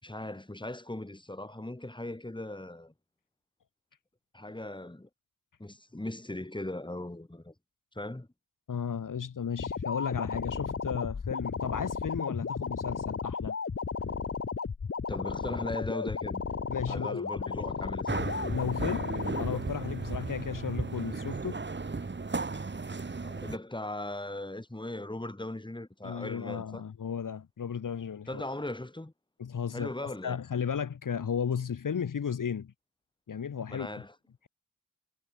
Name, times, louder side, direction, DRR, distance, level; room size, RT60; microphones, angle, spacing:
voice 1, 0.0-2.9 4.3-5.1 5.6-7.5 7.9-8.3 15.1-16.4 16.9-18.3 23.2-26.8 28.3-29.1 29.7-30.4 33.7-34.1, left 1 dB, 15° left, 4.6 m, -39 dB
voice 2, 8.7-13.6 16.7-17.2 18.5-19.1 19.4-21.6 26.0-28.4 29.4-32.7 33.3-33.9, left 7 dB, 70° left, 2.2 m, -34 dB
sound 1, 9.6-19.6, left 5 dB, 40° left, 1.4 m, -34 dB
sound 2, 18.1-23.6, right 4 dB, 35° right, 2.2 m, -35 dB
cardioid pair, 65°, 33 cm